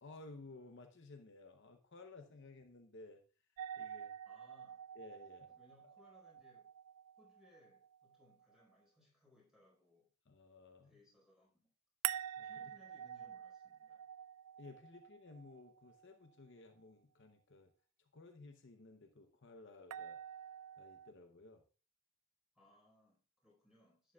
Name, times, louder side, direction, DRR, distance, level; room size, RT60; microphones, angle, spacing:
voice 1, 0.0-3.2 3.8-4.1 4.9-5.5 10.3-11.0 12.4-12.5 14.6-17.7 18.0-20.2 20.8-21.6, left 2 dB, 55° left, 5 dB, 0.8 m, -56 dB
sound 1, 3.6-8.5 12.0-16.1 19.9-21.1, right 11 dB, 85° right, 0.3 m, -47 dB
voice 2, 4.3-4.9 5.5-6.7 7.2-10.1 10.8-11.7 12.4-14.1 22.5-24.1, left 1 dB, ahead, -4 dB, 4.7 m, -68 dB
11.5 x 9.0 x 2.3 m, 0.36 s
head